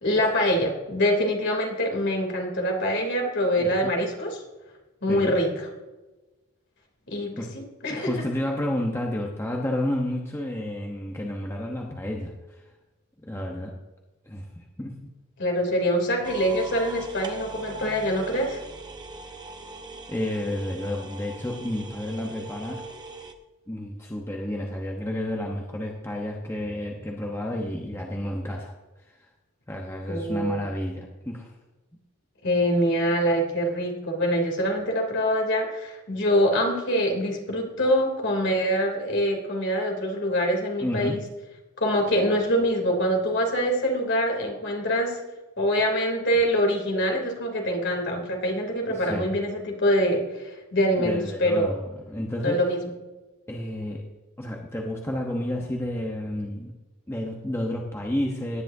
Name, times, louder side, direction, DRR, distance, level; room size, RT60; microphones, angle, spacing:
voice 1, 0.0-4.4 5.0-5.7 7.1-8.1 15.4-18.6 30.1-30.6 32.4-41.2 41.8-45.2 45.6-51.7 52.4-52.8, equal, 55° left, 1 dB, 3.1 m, -24 dB
voice 2, 3.6-3.9 5.1-5.3 7.4-7.5 7.9-12.6 13.2-13.7 14.3-15.1 20.1-22.9 23.7-28.7 29.1-29.2 29.7-31.5 40.8-41.2 48.9-49.3 51.0-52.6 53.5-54.0 54.4-56.7 57.1-58.6, left 1 dB, 10° left, 0 dB, 1.0 m, -31 dB
sound 1, 16.2-23.3, right 2 dB, 20° right, 0.8 m, -40 dB
18.0 x 10.0 x 2.7 m, 1.1 s
head